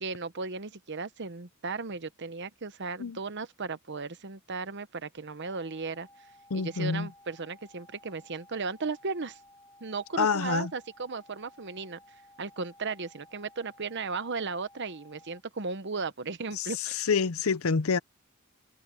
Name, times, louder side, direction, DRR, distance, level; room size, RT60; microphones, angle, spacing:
voice 1, 0.0-6.1 6.5-9.4 9.8-12.0 12.4-17.0, right 4 dB, 55° right, 1.0 m, -36 dB
sound 1, 5.4-15.4, left 1 dB, 15° left, 3.9 m, -57 dB
voice 2, 6.5-7.1 10.2-10.7 16.6-16.7 17.0-18.0, left 5 dB, 70° left, 0.6 m, -27 dB
head